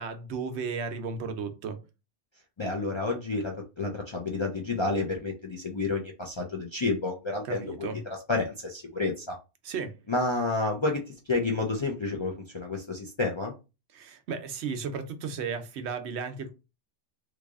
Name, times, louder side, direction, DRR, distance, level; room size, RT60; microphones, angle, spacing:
voice 1, 0.0-1.8 7.5-8.0 9.6-10.0 13.9-16.5, right 5 dB, 80° right, 0.9 m, -34 dB
voice 2, 2.6-7.9 8.3-9.4 10.1-13.5, left 3 dB, 45° left, 0.4 m, -30 dB
3.2 x 2.3 x 3.5 m
omnidirectional pair, 1.2 m